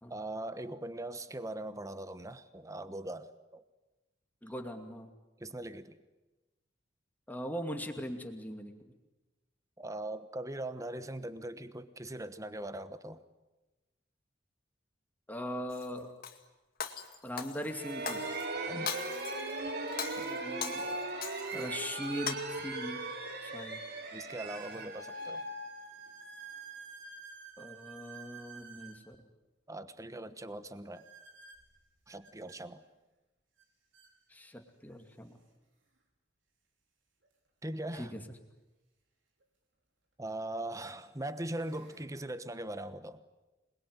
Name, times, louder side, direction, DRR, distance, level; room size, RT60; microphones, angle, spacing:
voice 1, 0.1-3.6 5.4-6.0 9.8-13.2 18.7-18.9 21.5-21.6 24.1-25.5 29.7-31.1 32.1-32.8 37.6-38.1 40.2-43.2, right 1 dB, 15° right, 12 dB, 1.2 m, -40 dB
voice 2, 4.4-5.1 7.3-8.7 15.3-16.1 17.2-18.2 20.2-21.0 21.5-23.1 23.4-23.8 27.6-29.2 34.3-35.4 38.0-38.2, equal, 10° left, 4 dB, 2.5 m, -40 dB
Shatter, 15.7-16.4 16.8-18.5 18.9-19.5 19.9-21.7 22.0-22.3, left 7 dB, 50° left, 2.2 m, -40 dB
sound 1, 17.7-26.4, right 2 dB, 55° right, 3.2 m, -38 dB
sound 2, 23.4-23.5 24.4-29.0 30.9-32.6 33.6-33.7 33.9-34.1 34.9-35.0 37.2-37.3 39.4-39.5 40.2-40.5 41.1-42.0, right 6 dB, 75° right, 4.9 m, -51 dB
27.5 x 21.0 x 9.6 m, 1.1 s
head